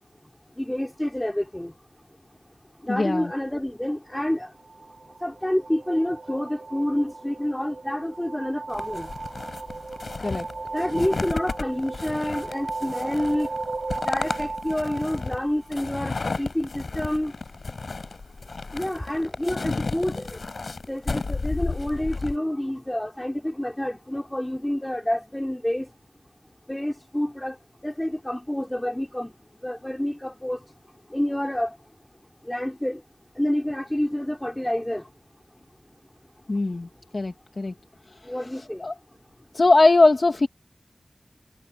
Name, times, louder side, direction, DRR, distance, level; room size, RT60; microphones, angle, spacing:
voice 1, 0.6-1.7 2.8-4.5 5.2-9.1 10.7-13.5 14.0-17.3 18.7-20.4 20.9-25.9 26.7-27.6 27.8-29.3 29.6-30.6 31.1-31.8 32.5-33.0 33.4-35.1 38.3-38.8, left 1 dB, 10° left, 4.6 m, -28 dB
voice 2, 2.9-3.3 10.2-10.5 36.5-36.9 37.1-37.7 38.8-38.9 39.5-40.5, left 2 dB, 50° left, 1.6 m, -20 dB
sound 1, 4.3-16.0, right 3 dB, 60° right, 5.3 m, -36 dB
sound 2, 8.7-22.4, left 3 dB, 70° left, 3.5 m, -33 dB
wide cardioid pair, 80°, 0 cm